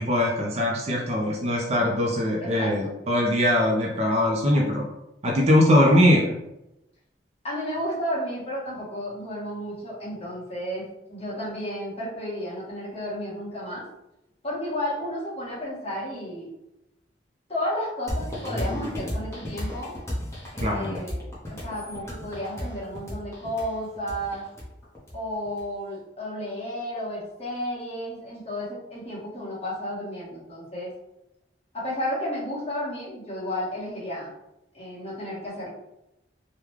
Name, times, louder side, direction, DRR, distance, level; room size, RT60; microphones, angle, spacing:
voice 1, 0.0-4.9 5.2-6.3 20.6-21.0, left 1 dB, 35° right, -1 dB, 0.5 m, -21 dB
voice 2, 2.4-3.0 7.4-13.8 14.4-16.5 17.5-19.9 20.5-21.2 21.5-24.5 25.1-30.9 31.7-34.3 34.7-35.7, equal, 35° left, -8 dB, 1.3 m, -32 dB
sound 1, 18.1-25.6, left 1 dB, 15° left, 0.8 m, -33 dB
3.6 x 2.2 x 3.1 m, 0.90 s
head